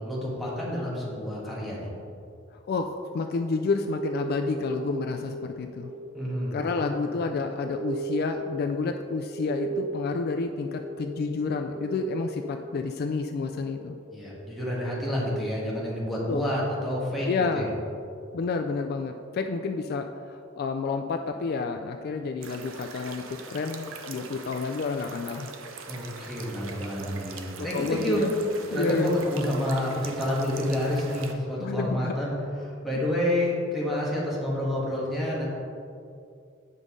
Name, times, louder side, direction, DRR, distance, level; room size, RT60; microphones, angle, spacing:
voice 1, 0.0-1.9 6.1-6.6 14.1-17.7 25.9-28.3 28.7-32.3 32.6-35.5, left 1 dB, ahead, -6 dB, 1.5 m, -29 dB
voice 2, 2.7-5.9 6.5-14.0 16.3-16.4 17.3-17.7 18.3-25.5 27.6-28.3 28.7-29.1 31.6-32.1, left 4 dB, 50° left, 6 dB, 0.3 m, -30 dB
sound 1, 3.0-15.4, right 2 dB, 45° right, 1.1 m, -38 dB
sound 2, 22.4-31.3, right 4 dB, 90° right, 0.6 m, -42 dB
8.1 x 5.2 x 3.7 m, 2.5 s
head